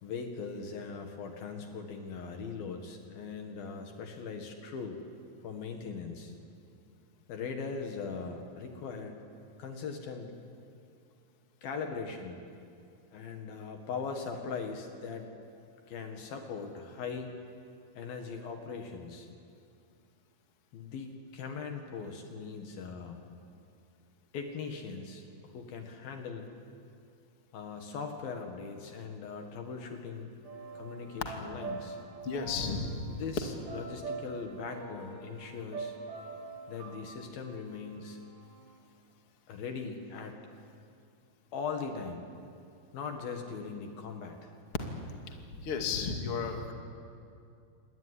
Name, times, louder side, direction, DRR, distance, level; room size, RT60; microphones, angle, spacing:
voice 1, 0.0-5.0 5.4-6.3 7.3-9.2 9.6-10.3 11.6-12.5 13.1-15.3 15.9-17.3 18.0-19.3 20.7-23.3 24.3-26.5 27.5-30.3 30.7-32.0 33.1-36.0 36.7-38.2 39.5-40.4 41.5-42.2 42.9-44.5, left 5 dB, 65° left, 4 dB, 3.4 m, -40 dB
sound 1, 30.4-38.7, right 4 dB, 50° right, 7.8 m, -44 dB
voice 2, 32.2-33.1 45.6-46.7, left 5 dB, 40° left, 3 dB, 2.7 m, -33 dB
27.5 x 21.0 x 9.9 m, 2.5 s
omnidirectional pair, 4.8 m